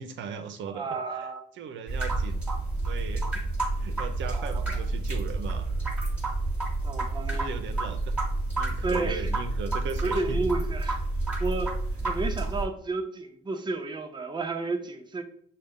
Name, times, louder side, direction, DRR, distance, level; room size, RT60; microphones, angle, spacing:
voice 1, 0.0-2.4 2.8-3.4 3.8-5.9 7.3-8.1 8.6-10.4 12.0-12.1, right 6 dB, 70° right, 6 dB, 0.6 m, -38 dB
voice 2, 0.7-1.4 4.3-4.6 6.8-7.6 8.8-9.3 10.0-11.0 11.4-11.7 12.0-15.2, right 3 dB, 20° right, 4 dB, 0.7 m, -31 dB
sound 1, 1.9-12.7, right 2 dB, 5° right, 1.5 m, -29 dB
6.4 x 2.2 x 3.6 m, 0.64 s
cardioid pair, 90°, 20 cm